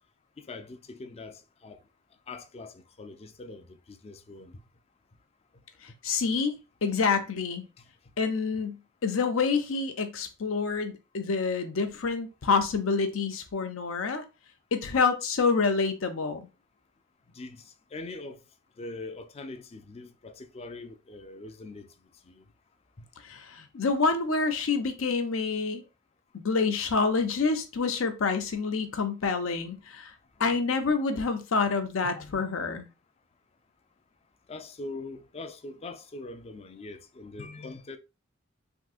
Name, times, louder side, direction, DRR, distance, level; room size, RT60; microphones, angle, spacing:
voice 1, 0.4-1.8 2.3-4.6 17.3-17.6 17.9-18.4 18.8-21.9 22.3-22.4 23.0-23.1 32.0-32.5 34.5-38.0, left 2 dB, 30° left, 0.4 m, -42 dB
voice 2, 5.8-6.5 6.8-7.7 8.2-8.8 9.0-14.2 14.7-16.5 23.2-25.8 26.3-30.1 30.4-32.9, left 4 dB, 80° left, 0.6 m, -27 dB
3.6 x 2.7 x 2.4 m
head